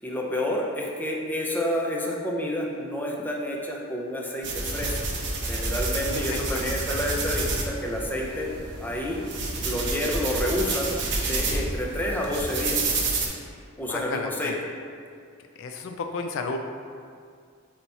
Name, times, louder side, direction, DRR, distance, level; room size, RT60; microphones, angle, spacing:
voice 1, 0.0-5.2 5.5-8.5 8.8-9.2 9.6-10.9 11.3-12.8 13.8-14.5, left 1 dB, 10° left, -2 dB, 0.7 m, -29 dB
sound 1, 4.4-13.3, right 3 dB, 55° right, 0.9 m, -29 dB
voice 2, 6.1-6.4 13.9-14.6 15.6-16.6, left 4 dB, 65° left, 4 dB, 0.4 m, -32 dB
8.9 x 3.0 x 4.1 m, 2.2 s
head